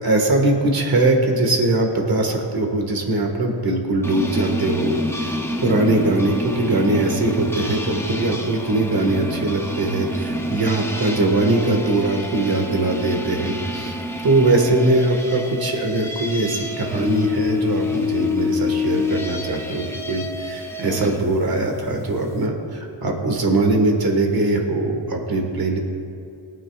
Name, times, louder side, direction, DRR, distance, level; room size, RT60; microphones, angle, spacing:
voice 1, 0.0-14.0 14.2-25.8, right 2 dB, 50° right, 2 dB, 1.7 m, -21 dB
sound 1, 4.0-21.2, left 2 dB, 5° left, 0.5 m, -27 dB
22.5 x 9.4 x 2.4 m, 2.5 s
wide cardioid pair, 175°, 46 cm